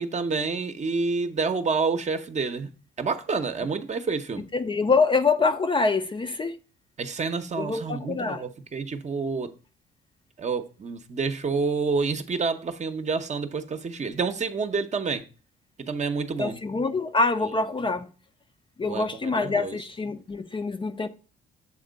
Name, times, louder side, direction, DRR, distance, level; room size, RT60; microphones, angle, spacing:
voice 1, 0.0-2.7 3.0-4.4 7.0-9.5 10.4-15.2 15.8-16.6 18.8-19.8, right 4 dB, 35° right, 0.8 m, -28 dB
voice 2, 4.5-6.6 7.6-8.4 16.4-18.1 18.8-21.1, left 4 dB, 25° left, 0.5 m, -25 dB
7.5 x 3.6 x 5.1 m
cardioid pair, 90°, 20 cm